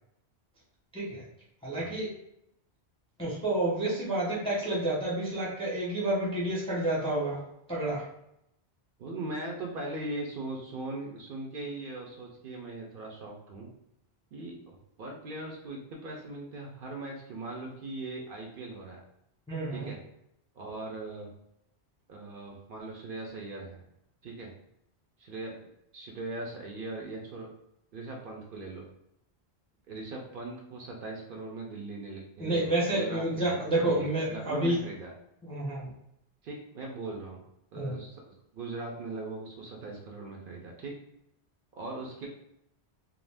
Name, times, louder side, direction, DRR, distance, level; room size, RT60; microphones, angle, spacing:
voice 1, 1.6-2.1 3.2-7.4 7.7-8.0 19.5-19.9 32.4-34.8 35.4-35.9 37.8-38.0, right 1 dB, 5° left, -5 dB, 0.5 m, -29 dB
voice 2, 9.0-13.7 14.3-19.0 19.7-20.0 20.5-21.3 22.1-23.8 24.2-24.5 25.2-27.5 27.9-28.8 29.9-33.4 33.8-35.1 36.4-37.4 37.7-40.9 41.7-42.3, right 2 dB, 60° right, -1 dB, 0.7 m, -40 dB
2.3 x 2.1 x 3.3 m, 0.79 s
omnidirectional pair, 1.1 m